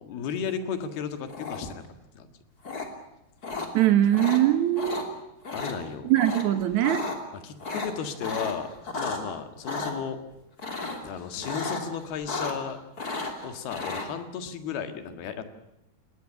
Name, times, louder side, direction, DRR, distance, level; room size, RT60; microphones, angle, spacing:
voice 1, 0.0-1.8 2.2-2.3 5.5-6.1 7.3-10.2 11.0-12.8 13.4-15.4, left 7 dB, 80° left, 8 dB, 3.7 m, -34 dB
sound 1, 1.3-1.9 2.6-2.9 3.4-3.7 4.1-4.4 4.7-5.0 5.4-5.7 6.2-6.4 6.7-7.2 7.6-9.2 9.6-9.9 10.6-11.1 11.4-11.8 12.1-12.7 13.0-14.1, left 3 dB, 25° left, 3.0 m, -33 dB
voice 2, 3.7-5.2 6.0-7.1, right 12 dB, 70° right, 11 dB, 1.8 m, -22 dB
20.0 x 20.0 x 9.9 m, 0.88 s
omnidirectional pair, 4.5 m